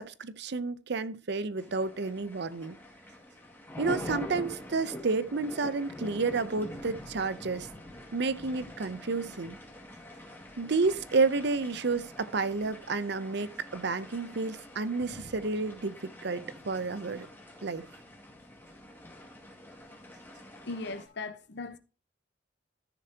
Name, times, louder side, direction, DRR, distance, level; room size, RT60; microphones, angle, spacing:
voice 1, 0.0-2.8 3.8-7.7 8.1-9.6 10.6-16.0 16.2-17.3 17.6-17.8, right 4 dB, 65° right, 0.7 m, -30 dB
sound 1, 1.6-21.1, left 1 dB, 10° left, 2.2 m, -45 dB
voice 2, 20.6-21.8, left 3 dB, 65° left, 0.9 m, -38 dB
13.5 x 6.8 x 2.8 m
head